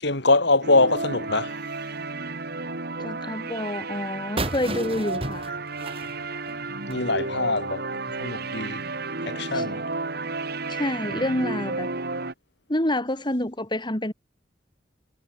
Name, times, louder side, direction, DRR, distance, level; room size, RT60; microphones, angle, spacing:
voice 1, 0.0-1.6 6.9-7.9 8.2-8.8 9.3-9.8, left 2 dB, 65° left, 5.6 m, -23 dB
sound 1, 0.6-12.3, right 3 dB, 60° right, 3.6 m, -32 dB
voice 2, 3.0-5.6 9.5-9.7 10.7-11.9 12.7-14.1, left 1 dB, 25° left, 3.7 m, -28 dB
sound 2, 4.4-7.1, right 2 dB, 30° right, 4.5 m, -33 dB
head